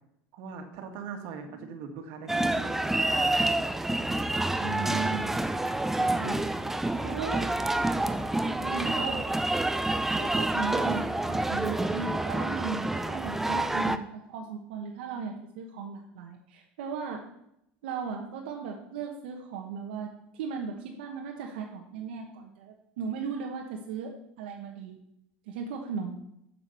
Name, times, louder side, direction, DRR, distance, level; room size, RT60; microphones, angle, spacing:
voice 1, 0.3-3.4, right 5 dB, 65° right, 5 dB, 2.0 m, -41 dB
sound 1, 2.3-14.0, right 2 dB, 5° right, 0.5 m, -28 dB
voice 2, 4.6-5.3 6.0-6.4 7.0-7.5 8.4-9.3 10.2-17.2 17.8-20.1 20.3-25.0 25.5-26.2, right 6 dB, 85° right, 1 dB, 1.2 m, -37 dB
7.6 x 6.9 x 6.8 m, 0.78 s
supercardioid pair, 130°, 5 cm